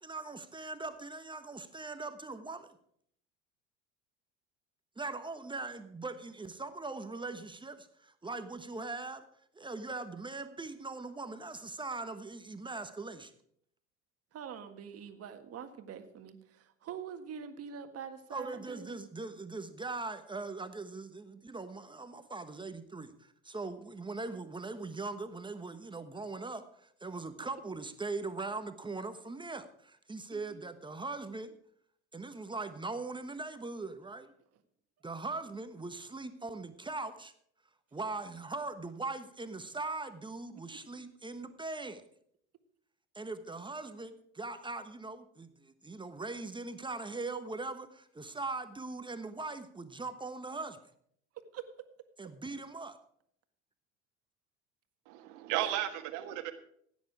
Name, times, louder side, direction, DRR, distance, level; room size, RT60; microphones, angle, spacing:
voice 1, 0.0-2.7 5.0-9.2 9.5-13.3 18.3-31.5 32.1-34.3 35.0-37.3 37.9-42.0 43.1-50.8 52.2-53.0, right 3 dB, 15° right, 9 dB, 1.2 m, -40 dB
voice 2, 14.3-19.0 30.3-30.6 51.5-51.7, right 7 dB, 45° right, 7 dB, 1.8 m, -45 dB
voice 3, 55.0-56.5, right 13 dB, 60° right, 7 dB, 1.6 m, -34 dB
16.0 x 9.5 x 4.9 m, 0.68 s
hypercardioid pair, 75°, 34 cm